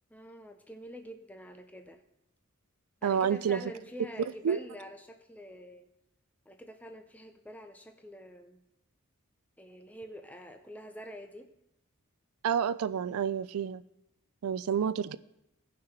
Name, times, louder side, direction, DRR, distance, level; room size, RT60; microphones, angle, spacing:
voice 1, 0.1-2.0 3.0-5.9 6.5-8.6 9.6-11.5 14.7-14.9, equal, 5° left, 0.5 m, -46 dB
voice 2, 3.0-3.6 4.4-4.6 12.4-13.8 14.4-15.2, right 7 dB, 80° right, 0.4 m, -29 dB
16.5 x 5.9 x 3.2 m
head